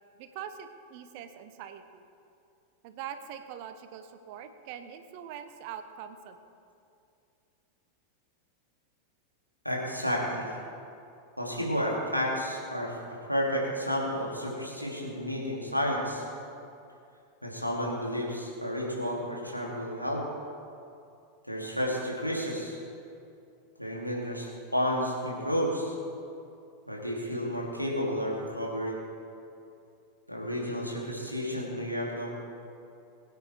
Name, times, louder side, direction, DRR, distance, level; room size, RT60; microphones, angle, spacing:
voice 1, 0.2-2.0 2.8-6.4, right 9 dB, 45° right, 9 dB, 1.1 m, -43 dB
voice 2, 9.6-10.6 11.4-13.0 13.3-16.2 17.4-20.2 21.5-22.8 23.8-26.0 26.9-29.0 30.3-32.3, equal, 90° left, -3 dB, 2.9 m, -31 dB
22.0 x 9.3 x 4.6 m, 2.6 s
figure-of-eight pair, 90°, 0 cm